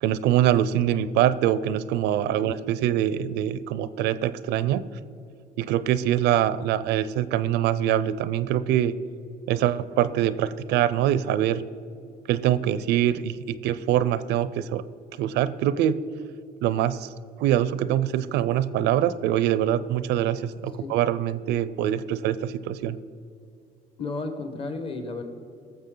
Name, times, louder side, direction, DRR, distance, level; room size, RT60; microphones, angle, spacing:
voice 1, 0.0-4.8 5.6-8.9 9.5-11.6 12.3-14.8 15.2-16.0 16.6-17.1 17.4-23.0, right 11 dB, 85° right, 15 dB, 0.5 m, -24 dB
voice 2, 24.0-25.2, left 3 dB, 30° left, 7 dB, 1.2 m, -33 dB
18.0 x 7.0 x 3.8 m, 2.4 s
cardioid pair, 110°, 17 cm